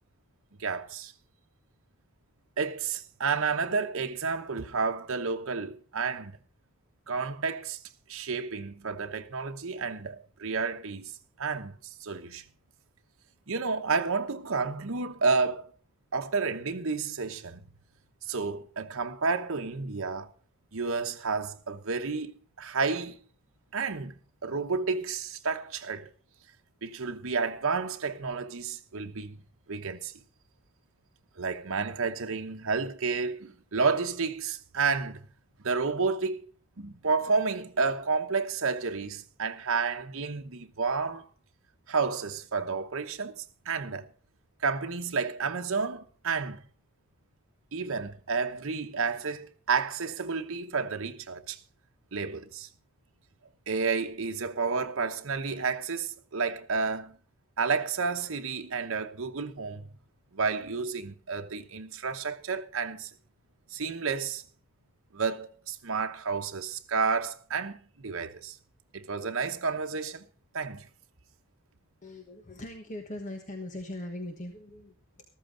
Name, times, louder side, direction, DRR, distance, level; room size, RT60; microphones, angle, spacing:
voice 1, 0.6-1.1 2.6-6.4 7.1-7.8 8.1-11.1 11.4-12.4 13.5-15.7 16.1-17.6 18.3-20.3 20.7-23.2 23.7-24.1 24.4-26.1 26.8-29.4 29.7-30.1 31.4-35.2 35.6-36.5 36.8-41.3 41.9-44.1 44.6-46.6 47.7-51.6 52.1-52.7 53.7-57.2 57.6-59.9 60.3-63.1 63.7-64.4 65.1-68.6 68.9-70.2 70.5-70.9, right 4 dB, 80° right, 1.0 m, -31 dB
voice 2, 72.0-75.2, left 1 dB, 35° left, 1.3 m, -40 dB
14.0 x 13.5 x 3.8 m
head